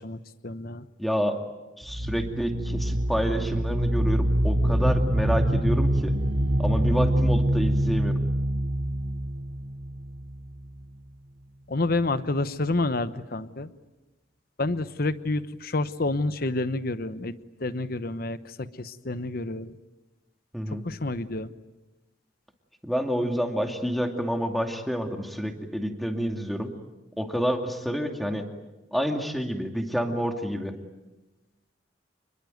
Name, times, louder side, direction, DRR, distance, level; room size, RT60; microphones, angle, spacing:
voice 1, 0.0-0.8 11.7-13.7 14.6-19.8 20.7-21.5, left 2 dB, 55° left, 13 dB, 1.0 m, -29 dB
voice 2, 1.0-1.4 1.8-6.1 6.6-8.2 20.5-20.8 22.8-26.7 27.2-28.5 28.9-30.7, equal, ahead, 4 dB, 2.5 m, -28 dB
sound 1, 1.8-10.5, right 1 dB, 80° right, 2.8 m, -25 dB
27.5 x 22.0 x 9.3 m, 1.1 s
head